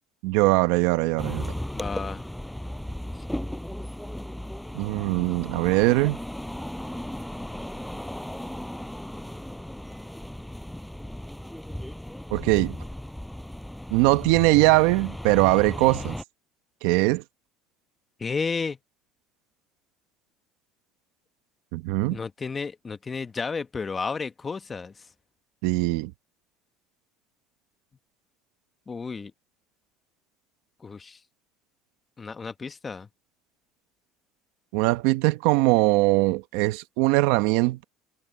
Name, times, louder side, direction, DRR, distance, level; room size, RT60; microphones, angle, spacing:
voice 1, 0.2-1.5 4.7-6.2 12.3-12.7 13.9-16.1 16.8-17.2 21.7-22.2 25.6-26.1 34.7-37.8, right 21 dB, 80° right, 1.1 m, -21 dB
sound 1, 1.2-16.2, left 1 dB, 5° left, 6.8 m, -36 dB
voice 2, 1.7-2.2 18.2-18.8 22.1-24.9 28.9-29.3 30.8-31.2 32.2-33.1, left 4 dB, 25° left, 1.2 m, -32 dB
supercardioid pair, 105°, 0 cm